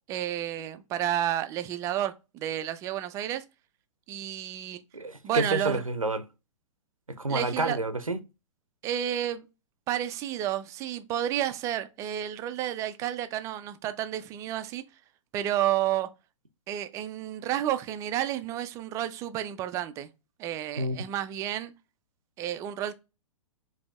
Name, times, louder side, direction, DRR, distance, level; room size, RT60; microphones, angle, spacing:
voice 1, 0.1-3.4 4.1-4.8 5.2-5.8 7.3-7.8 8.8-9.5 9.9-14.8 15.3-16.1 16.7-20.1 20.4-21.7 22.4-22.9, right 11 dB, 20° right, 0.3 m, -31 dB
voice 2, 4.9-6.2 7.1-8.2 20.8-21.0, right 2 dB, 90° right, 0.5 m, -29 dB
5.0 x 2.7 x 2.4 m
figure-of-eight pair, 110°, 17 cm